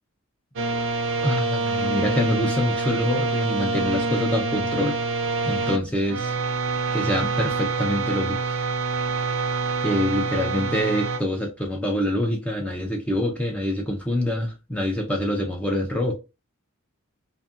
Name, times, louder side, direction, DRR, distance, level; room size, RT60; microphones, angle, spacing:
sound 1, 0.6-5.8 6.0-11.2, right 3 dB, 60° right, 0.5 m, -26 dB
voice 1, 1.2-5.0 5.4-6.3 6.9-8.7 9.8-16.1, left 1 dB, 5° left, 0.4 m, -25 dB
2.6 x 2.6 x 2.4 m
head